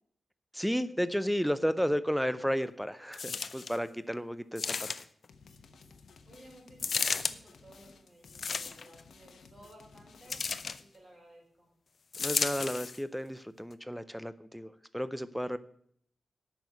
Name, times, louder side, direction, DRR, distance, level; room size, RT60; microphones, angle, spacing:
voice 1, 0.5-4.9 12.2-15.6, equal, ahead, 14 dB, 0.5 m, -32 dB
sound 1, 3.1-3.8 4.6-5.3 6.8-7.4 8.3-9.0 10.3-10.8 12.1-13.0 13.7-13.8, left 5 dB, 55° left, 0.5 m, -33 dB
sound 2, 5.3-11.0, left 4 dB, 80° left, 1.0 m, -57 dB
voice 2, 6.3-10.4 10.8-11.7, right 1 dB, 35° right, -1 dB, 4.2 m, -56 dB
8.6 x 6.2 x 8.1 m, 0.66 s
wide cardioid pair, 115°, 0 cm